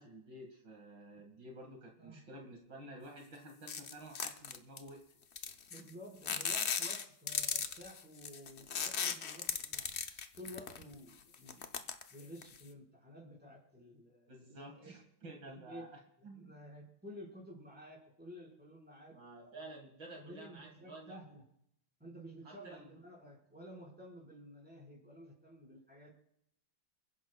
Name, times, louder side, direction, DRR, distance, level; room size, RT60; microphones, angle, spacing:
voice 1, 0.0-5.0 14.3-16.6 19.1-21.2 22.4-22.9, right 1 dB, 65° right, 1 dB, 2.6 m, -51 dB
sound 1, 3.7-4.9 5.4-5.9 6.2-10.9 11.3-12.6, left 6 dB, 55° left, 0.8 m, -37 dB
voice 2, 5.7-9.9 10.4-11.6 12.1-14.9 15.4-15.9 16.2-19.5 20.1-21.4 22.0-26.1, equal, 5° right, -2 dB, 4.6 m, -52 dB
29.5 x 10.5 x 2.3 m, 0.76 s
omnidirectional pair, 2.1 m